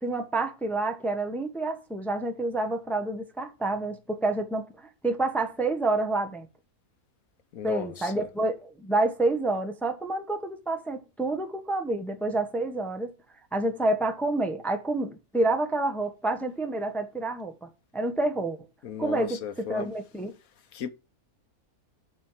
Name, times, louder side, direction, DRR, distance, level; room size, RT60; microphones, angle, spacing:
voice 1, 0.0-6.5 7.6-13.1 13.5-18.6 19.0-20.3, right 2 dB, ahead, 1.0 m, -28 dB
voice 2, 7.5-8.3 18.8-19.9 20.7-20.9, left 8 dB, 70° left, 1.3 m, -35 dB
9.0 x 4.3 x 7.3 m
omnidirectional pair, 1.6 m